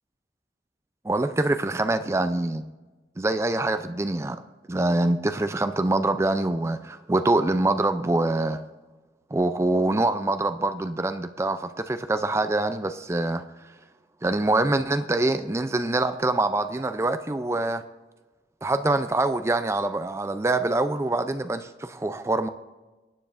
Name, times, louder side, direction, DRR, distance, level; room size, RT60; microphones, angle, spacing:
voice 1, 1.0-2.7 3.2-4.4 4.7-8.6 9.3-13.4 14.2-17.8 18.6-22.5, right 2 dB, 15° right, 10 dB, 0.3 m, -25 dB
19.0 x 9.3 x 2.5 m, 1.2 s
head